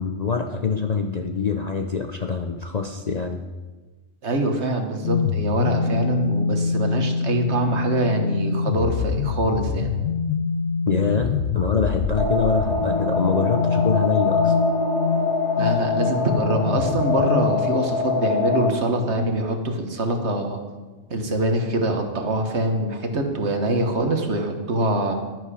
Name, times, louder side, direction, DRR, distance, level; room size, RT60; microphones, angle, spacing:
voice 1, 0.0-3.4 10.9-14.5, left 5 dB, 40° left, 4 dB, 0.6 m, -25 dB
voice 2, 4.2-9.9 15.6-20.6 21.1-25.1, right 1 dB, 60° right, 4 dB, 1.6 m, -24 dB
sound 1, 5.0-17.9, left 5 dB, 70° left, 0.9 m, -25 dB
sound 2, 12.2-18.7, left 4 dB, 25° left, 1.8 m, -24 dB
11.0 x 11.0 x 4.9 m, 1.3 s
omnidirectional pair, 1.3 m